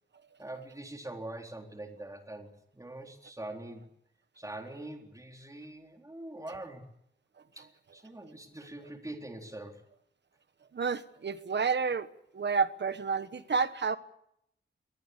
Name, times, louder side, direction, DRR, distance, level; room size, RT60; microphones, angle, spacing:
voice 1, 0.4-3.9 4.4-6.9 7.6-9.8, right 1 dB, 15° right, 3 dB, 3.9 m, -43 dB
voice 2, 10.7-12.1 12.3-14.0, right 5 dB, 60° right, 12 dB, 1.3 m, -30 dB
22.5 x 19.0 x 8.5 m, 0.75 s
wide cardioid pair, 140°, 20 cm